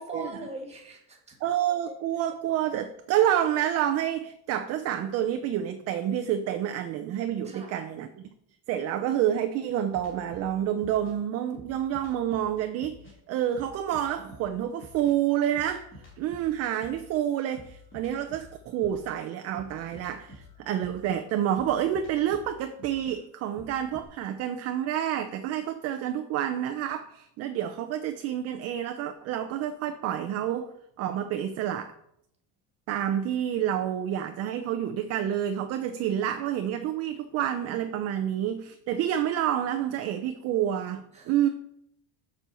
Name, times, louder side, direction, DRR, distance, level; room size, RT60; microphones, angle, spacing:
voice 1, 0.0-1.3 7.4-7.8 41.1-41.3, right 1 dB, 15° right, 1 dB, 1.6 m, -41 dB
voice 2, 1.4-8.2 8.7-13.0 13.3-15.9 16.2-30.7 31.0-31.9 32.9-41.5, right 10 dB, 40° right, 8 dB, 0.4 m, -28 dB
sound 1, 9.9-13.2 13.5-17.1 17.5-24.1, left 1 dB, 30° left, 2.4 m, -49 dB
6.9 x 4.4 x 6.8 m, 0.74 s
cardioid pair, 170°, 39 cm